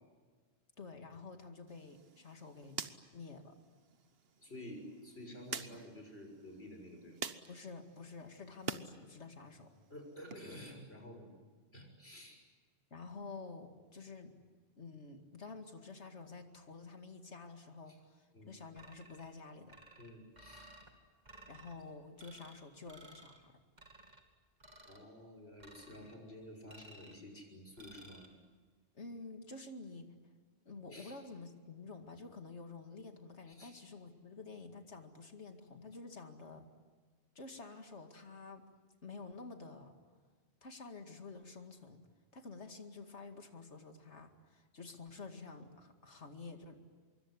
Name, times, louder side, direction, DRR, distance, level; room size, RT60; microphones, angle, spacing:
voice 1, 0.8-3.5 7.5-9.7 12.9-14.4 14.8-19.7 21.5-23.6 28.9-30.1 30.7-36.7 37.4-38.7 39.0-39.9 40.6-42.1 42.3-46.8, left 3 dB, 80° left, 5 dB, 2.5 m, -50 dB
sound 1, 1.7-8.9 9.2-10.4, right 5 dB, 60° right, 1.3 m, -48 dB
voice 2, 4.4-7.2 9.9-11.3 11.7-12.4 17.9-18.0 18.3-18.5 20.0-20.7 24.9-28.3 30.9-31.2 33.5-33.8, left 1 dB, 65° left, 3 dB, 6.5 m, -51 dB
sound 2, 18.8-19.3 19.7-20.9 21.2-21.7 22.2-22.6 22.9-23.4 23.8-24.2 24.6-25.1 25.6-26.2 26.7-27.2 27.8-28.3, right 1 dB, 40° right, 2.9 m, -57 dB
25.5 x 23.5 x 9.8 m, 1.5 s
omnidirectional pair, 1.2 m